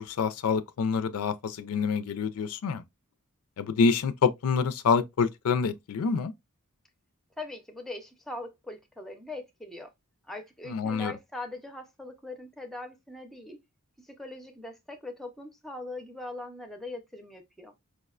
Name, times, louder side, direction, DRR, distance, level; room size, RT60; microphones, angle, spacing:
voice 1, 0.0-2.8 3.6-6.3 10.7-11.1, left 5 dB, 80° left, 0.4 m, -27 dB
voice 2, 7.4-9.9 10.2-13.6 14.0-17.7, left 2 dB, ahead, 0.5 m, -41 dB
4.7 x 2.1 x 2.3 m
head